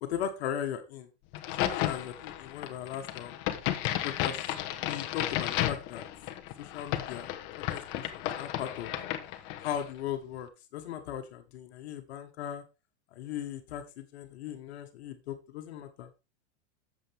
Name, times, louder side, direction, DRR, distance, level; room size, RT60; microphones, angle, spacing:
voice 1, 0.0-1.1 1.5-3.4 4.0-4.4 4.8-6.0 6.6-7.3 7.6-8.9 9.6-12.6 13.1-16.1, left 10 dB, 65° left, 6 dB, 1.6 m, -38 dB
Crack, 1.3-9.9, left 13 dB, 35° left, 1.1 m, -33 dB
8.9 x 7.6 x 3.5 m, 0.27 s
supercardioid pair, 155°, 35 cm